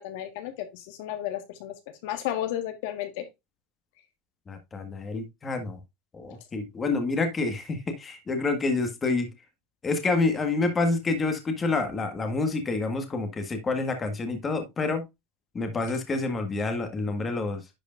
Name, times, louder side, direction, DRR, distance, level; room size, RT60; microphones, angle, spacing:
voice 1, 0.0-1.7 2.0-3.2, left 12 dB, 70° left, 1.6 m, -33 dB
voice 2, 4.5-5.8 6.1-9.3 9.8-15.0 15.5-17.6, left 3 dB, 20° left, 1.6 m, -28 dB
10.5 x 4.8 x 2.5 m
supercardioid pair, 145°, 0 cm